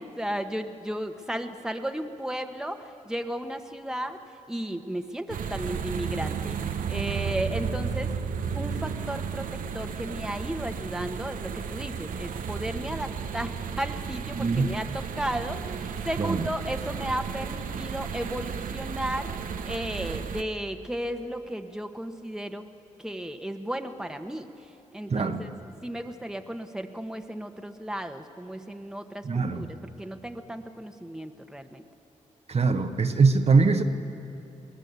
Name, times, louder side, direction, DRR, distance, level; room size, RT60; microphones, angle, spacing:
voice 1, 0.0-4.2 4.5-8.1 8.5-13.5 13.8-19.4 19.6-22.7 23.0-24.5 24.9-25.5 25.8-31.8, right 1 dB, 5° right, 5 dB, 1.4 m, -34 dB
sound 1, 5.3-20.4, right 6 dB, 85° right, 0.9 m, -33 dB
voice 2, 14.3-14.7 16.2-16.5 25.1-25.4 29.2-29.7 32.5-33.8, right 4 dB, 50° right, 6 dB, 1.2 m, -22 dB
23.0 x 18.5 x 8.3 m, 2.9 s
cardioid pair, 55°, 14 cm